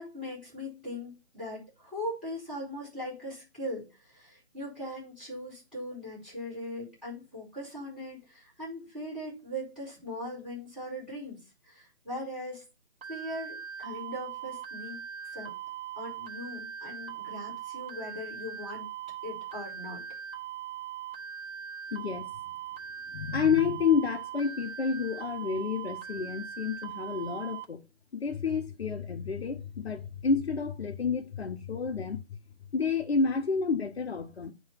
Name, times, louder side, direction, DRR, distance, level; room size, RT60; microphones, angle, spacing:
voice 1, 0.0-12.6 13.1-15.0 15.3-15.5 16.0-18.9 19.2-20.0, left 1 dB, ahead, 4.0 m, -40 dB
sound 1, 13.0-27.6, right 8 dB, 55° right, 1.2 m, -40 dB
voice 2, 21.9-22.3 23.1-27.8 28.1-32.2 32.7-34.5, left 5 dB, 65° left, 1.0 m, -29 dB
8.7 x 3.2 x 5.7 m
hypercardioid pair, 165°, 33 cm